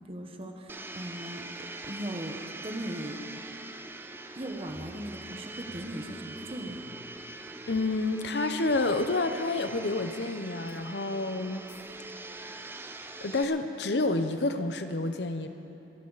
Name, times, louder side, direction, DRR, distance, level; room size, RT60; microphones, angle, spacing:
voice 1, 0.1-1.5 1.8-3.2 4.3-6.8, right 1 dB, 30° right, 3 dB, 1.2 m, -38 dB
Domestic sounds home sounds, 0.7-13.4, right 2 dB, 10° right, 0.5 m, -43 dB
sound 1, 4.7-5.4 5.7-6.3 6.7-7.2 7.7-7.8 8.7-8.8 9.7-9.8 10.7-10.8 11.7-11.8, equal, 35° left, 4.6 m, -52 dB
voice 2, 7.7-11.6 13.2-15.5, left 2 dB, 65° left, 8 dB, 0.9 m, -29 dB
25.5 x 11.5 x 4.1 m, 2.8 s
head